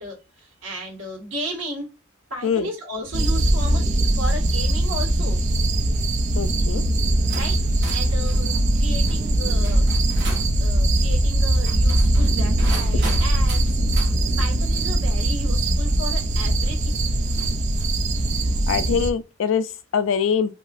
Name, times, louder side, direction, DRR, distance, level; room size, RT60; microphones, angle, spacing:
voice 1, 0.0-1.9 2.3-5.4 7.3-9.8 10.5-13.8 14.4-17.0, equal, 85° right, 1.7 m, -34 dB
sound 1, 3.1-19.1, right 1 dB, 40° right, 0.3 m, -21 dB
sound 2, 3.6-3.9 4.4-4.7 5.5-5.8 6.7-6.8 7.3-10.6 11.5-14.2 15.9-16.0 17.3-18.0, right 2 dB, 60° right, 1.0 m, -38 dB
voice 2, 6.4-6.8 18.7-20.5, left 7 dB, 80° left, 0.3 m, -23 dB
2.8 x 2.4 x 2.5 m
head